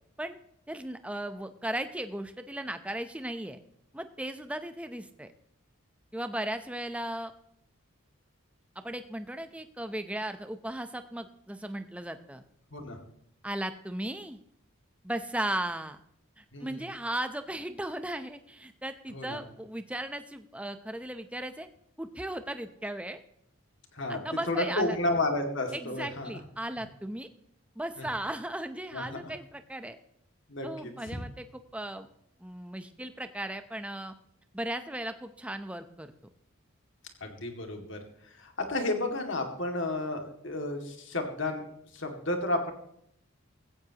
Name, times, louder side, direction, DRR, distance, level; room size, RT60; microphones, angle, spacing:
voice 1, 0.7-3.6 3.9-5.3 6.1-7.3 8.8-12.4 13.4-14.4 15.0-16.0 16.4-21.7 22.0-23.2 24.1-25.0 25.7-27.3 27.8-30.0 30.6-31.4 31.7-32.1 32.4-34.1 34.5-36.1, right 1 dB, 5° right, 9 dB, 0.6 m, -36 dB
voice 2, 16.5-16.8 19.1-19.4 23.9-26.3 28.0-28.1 28.9-29.3 30.5-31.2 37.2-38.0 38.2-41.6 41.9-42.7, left 2 dB, 60° left, 4 dB, 2.2 m, -32 dB
15.5 x 15.5 x 2.9 m, 0.72 s
head